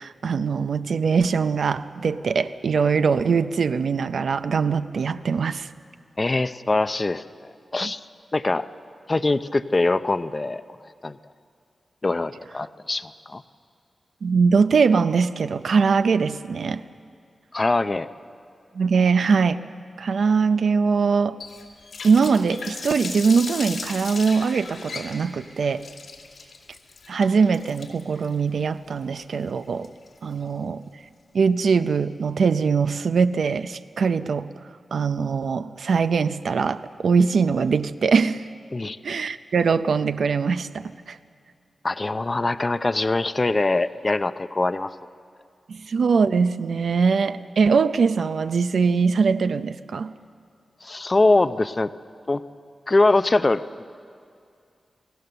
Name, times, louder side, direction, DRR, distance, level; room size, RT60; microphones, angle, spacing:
voice 1, 0.0-5.7 7.8-7.9 14.2-16.8 18.7-19.6 20.0-21.4 22.0-25.8 27.1-29.9 30.2-30.8 31.3-34.5 34.9-38.5 39.0-41.2 45.7-50.1, right 5 dB, 70° right, 11 dB, 0.5 m, -22 dB
voice 2, 6.2-7.2 7.7-8.0 8.3-8.7 9.1-10.6 11.0-11.2 12.0-13.4 17.5-18.1 38.7-39.0 41.8-44.9 50.8-51.9 52.3-52.4 52.9-53.8, left 2 dB, 25° left, 13 dB, 0.5 m, -22 dB
Water tap faucet, 21.4-30.3, left 4 dB, 80° left, 2.5 m, -38 dB
28.5 x 17.5 x 6.8 m, 2.3 s
wide cardioid pair, 160°, 0 cm